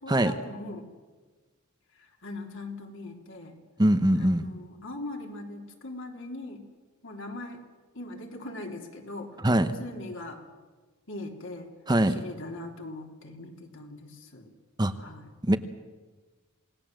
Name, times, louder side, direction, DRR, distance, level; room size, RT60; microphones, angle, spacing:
voice 1, 0.0-0.9 2.2-3.6 4.2-6.6 7.0-7.6 7.9-10.4 11.1-11.7 12.1-14.5 15.0-15.3, left 2 dB, 65° left, 2 dB, 3.3 m, -40 dB
voice 2, 3.8-4.5 9.4-9.7 11.9-12.2 14.8-14.9 15.4-15.6, right 1 dB, 20° right, 9 dB, 0.9 m, -22 dB
27.5 x 19.0 x 7.7 m, 1.4 s
head